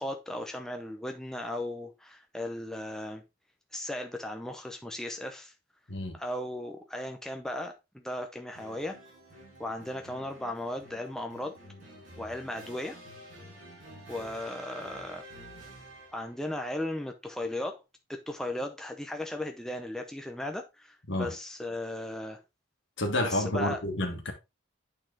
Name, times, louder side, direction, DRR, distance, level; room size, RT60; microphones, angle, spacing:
voice 1, 0.0-3.2 3.7-5.5 6.1-9.0 9.6-11.6 12.2-13.0 14.1-15.2 16.1-17.8 18.1-22.4 23.2-23.8, left 1 dB, 5° left, 0.6 m, -36 dB
sound 1, 8.5-16.4, right 1 dB, 40° right, 5.4 m, -49 dB
voice 2, 23.0-24.3, left 1 dB, 60° left, 1.7 m, -29 dB
9.0 x 4.2 x 3.9 m
head